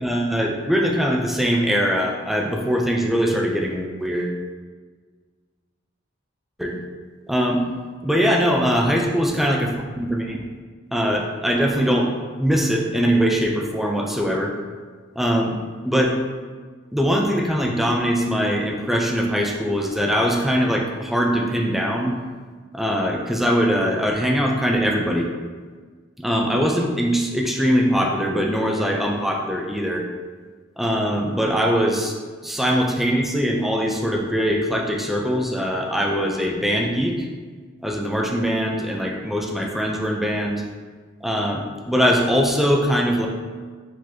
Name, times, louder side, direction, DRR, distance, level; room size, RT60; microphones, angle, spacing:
voice 1, 0.0-4.4 6.6-6.8 7.3-7.6 8.0-10.4 10.9-12.1 12.4-14.5 15.2-15.5 15.8-16.2 16.9-22.1 22.7-25.3 26.2-30.0 30.8-32.1 32.4-37.3 37.8-40.6 41.2-43.3, equal, ahead, -1 dB, 0.4 m, -22 dB
5.0 x 3.9 x 2.7 m, 1.5 s
head